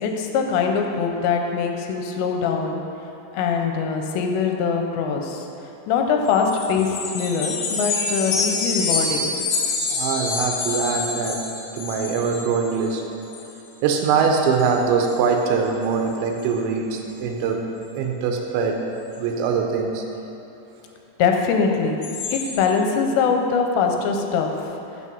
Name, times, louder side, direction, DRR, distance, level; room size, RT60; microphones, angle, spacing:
voice 1, 0.0-2.8 3.3-5.4 5.9-9.3 21.2-22.0 22.3-24.5, left 5 dB, 85° left, 3 dB, 2.9 m, -22 dB
sound 1, 6.3-12.9 13.2-13.5 13.9-14.1 14.5-14.7 15.0-15.2 15.7-15.8 16.1-16.5 22.0-22.5, left 4 dB, 65° left, 2.5 m, -27 dB
voice 2, 9.9-11.5 11.7-13.0 13.8-17.7 18.0-18.8 19.2-20.0, right 5 dB, 85° right, 2 dB, 2.9 m, -22 dB
8.5 x 6.5 x 5.4 m, 2.8 s
omnidirectional pair, 5.1 m